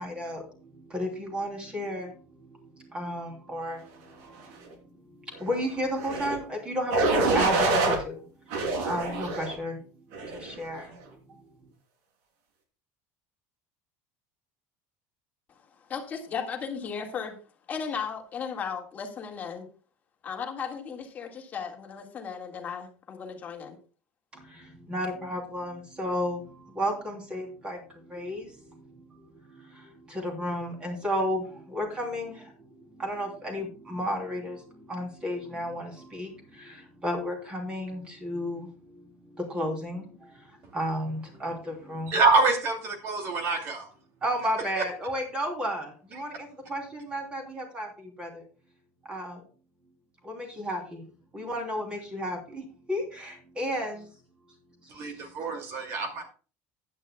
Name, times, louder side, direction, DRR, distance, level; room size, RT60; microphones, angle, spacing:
voice 1, 0.0-4.6 5.1-8.3 8.5-11.0 11.3-11.4 24.3-42.2 44.2-48.4 49.0-49.4 50.2-51.1 51.3-54.1 55.1-55.2, equal, 15° right, 2 dB, 3.3 m, -33 dB
sound 1, 6.0-6.4 6.9-8.0 8.5-9.5 10.1-10.5, right 3 dB, 75° right, 3.1 m, -26 dB
voice 2, 15.9-17.4 17.7-19.7 20.2-23.8, left 6 dB, 25° left, 3 dB, 1.8 m, -35 dB
voice 3, 42.1-43.9 44.8-44.9 54.9-56.2, right 3 dB, 40° right, 4 dB, 2.4 m, -26 dB
15.0 x 10.0 x 2.3 m, 0.37 s
cardioid pair, 170°, 7 cm